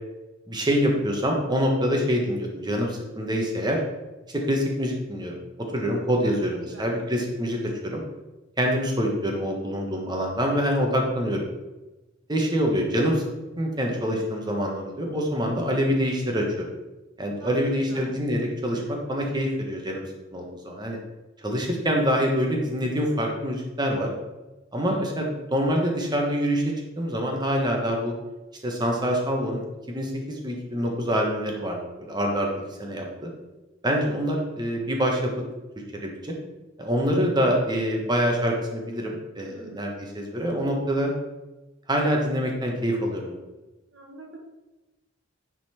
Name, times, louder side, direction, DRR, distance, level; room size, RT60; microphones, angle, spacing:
voice 1, 0.5-3.8 4.3-5.4 5.7-7.6 7.8-8.0 8.6-11.4 12.3-13.3 13.6-16.7 17.2-20.0 20.3-21.0 21.4-24.1 24.7-26.6 27.0-28.1 28.6-29.6 29.9-31.8 32.1-33.3 33.8-35.3 36.0-36.4 36.8-41.1 41.9-43.4, equal, 20° right, 1 dB, 1.3 m, -25 dB
voice 2, 6.3-7.0 17.4-18.2 39.3-39.9 43.9-44.4, right 2 dB, 75° right, 0 dB, 1.7 m, -44 dB
9.7 x 4.2 x 4.3 m, 1.1 s
head